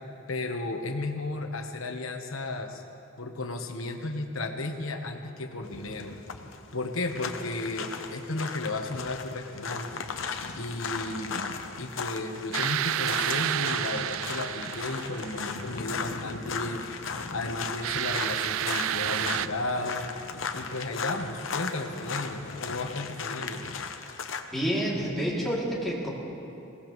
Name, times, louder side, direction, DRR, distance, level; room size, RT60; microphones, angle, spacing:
voice 1, 0.3-2.8 3.2-6.1 6.7-10.0 10.5-16.9 17.3-20.1 20.5-23.6, left 2 dB, 90° left, 5 dB, 1.2 m, -34 dB
sound 1, 5.6-24.4, left 5 dB, 70° left, 0.8 m, -36 dB
sound 2, 12.5-15.8 17.8-19.5, right 11 dB, 80° right, 0.3 m, -30 dB
voice 2, 24.5-26.1, equal, ahead, -6 dB, 2.8 m, -28 dB
21.0 x 17.5 x 3.2 m, 2.8 s
head